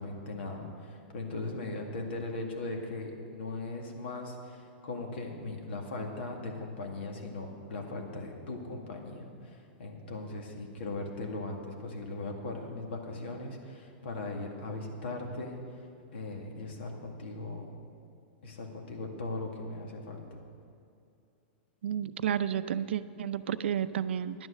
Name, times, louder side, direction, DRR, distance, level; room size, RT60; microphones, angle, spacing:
voice 1, 0.0-15.9 16.1-17.7 18.4-20.4, left 2 dB, 75° left, 2 dB, 2.1 m, -39 dB
voice 2, 21.8-24.5, right 9 dB, 80° right, 13 dB, 0.5 m, -31 dB
10.5 x 9.7 x 6.5 m, 2.5 s
hypercardioid pair, 150°, 6 cm